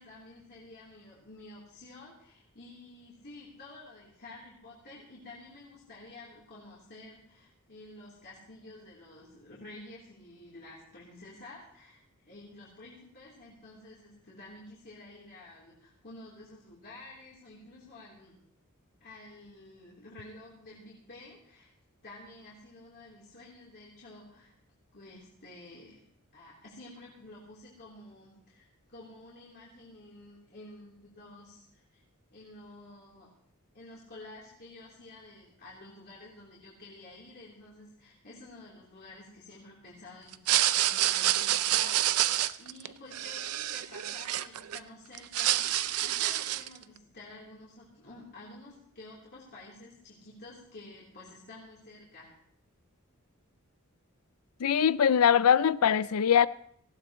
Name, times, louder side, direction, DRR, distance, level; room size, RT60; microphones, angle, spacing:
voice 1, 0.0-18.4 19.0-21.7 22.0-24.5 24.9-26.0 26.3-32.0 32.3-33.3 33.7-52.3, left 2 dB, 45° left, 3.5 m, -50 dB
sound 1, 40.3-44.8 45.1-46.8, right 13 dB, 75° right, 0.5 m, -28 dB
voice 2, 54.6-56.5, left 8 dB, 75° left, 0.4 m, -22 dB
18.5 x 16.0 x 3.1 m
head